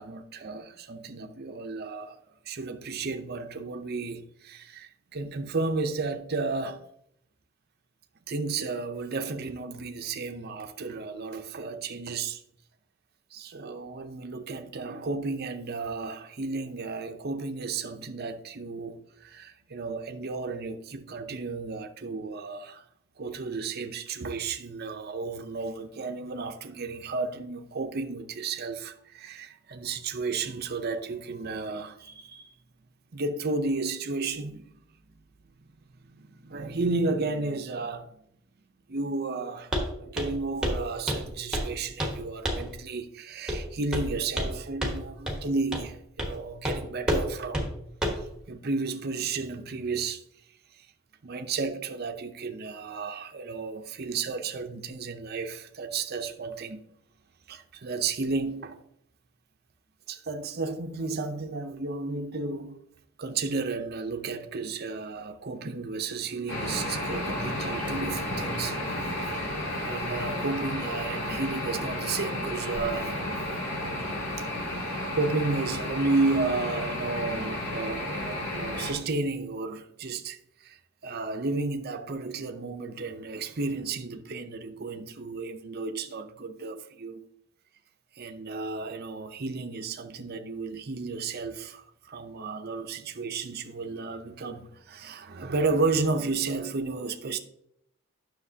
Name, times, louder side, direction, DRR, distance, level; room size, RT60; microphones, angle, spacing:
voice 1, 0.0-2.2 2.4-6.8 8.3-12.4 13.3-22.8 23.2-32.5 33.1-34.7 36.0-38.1 38.9-47.7 48.5-50.2 50.7-50.9 51.2-56.8 57.5-58.8 60.1-62.8 63.2-69.3 69.8-73.1 74.8-87.3 88.1-97.4, right 3 dB, 45° right, 0.6 m, -33 dB
Walk footsteps, 39.7-39.9 40.2-40.4 40.6-40.8 41.1-41.7 42.0-42.2 42.5-42.7 43.5-43.6 43.9-44.5 44.8-45.0 45.3-45.4 45.7-45.9 46.2-46.4 46.6-46.8 47.1-47.3 47.5-47.7 48.0-48.3, equal, 5° right, 1.2 m, -28 dB
sound 1, 66.5-78.9, left 1 dB, 85° left, 3.4 m, -32 dB
9.9 x 6.4 x 2.7 m
head